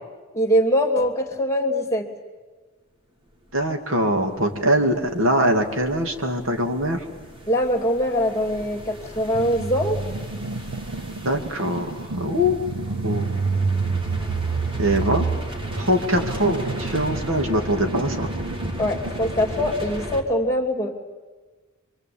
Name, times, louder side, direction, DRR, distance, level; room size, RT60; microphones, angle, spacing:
voice 1, 0.3-2.1 7.5-10.0 18.8-20.9, equal, 15° left, 3 dB, 2.6 m, -22 dB
voice 2, 3.5-7.0 11.2-12.6 13.0-13.3 14.8-15.3 15.8-18.3, equal, 65° right, 5 dB, 2.5 m, -22 dB
sound 1, 3.7-20.2, equal, 25° right, 2.2 m, -36 dB
sound 2, 9.3-19.8, right 4 dB, 90° right, 0.8 m, -29 dB
27.0 x 23.5 x 8.7 m, 1.3 s
head